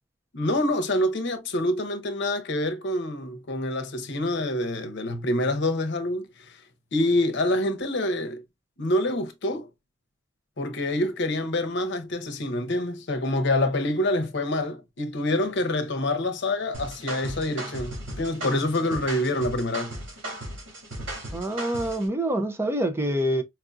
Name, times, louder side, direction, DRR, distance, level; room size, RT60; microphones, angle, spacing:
voice 1, 0.3-6.6 6.9-8.4 8.8-9.7 10.6-20.0, left 1 dB, 65° left, 0.8 m, -26 dB
sound 1, 16.7-22.1, right 1 dB, 85° right, 2.4 m, -36 dB
voice 2, 21.3-23.4, right 1 dB, 15° right, 0.5 m, -26 dB
4.6 x 2.6 x 2.3 m
head